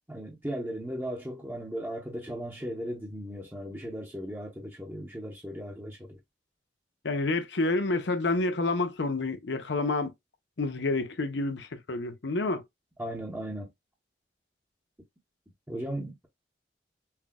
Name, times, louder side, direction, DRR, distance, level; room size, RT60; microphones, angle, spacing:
voice 1, 0.1-6.2 13.0-13.7 15.7-16.3, equal, 10° right, 0.9 m, -37 dB
voice 2, 7.0-10.1 10.6-12.6, left 2 dB, 85° left, 0.8 m, -28 dB
5.8 x 2.3 x 2.3 m
head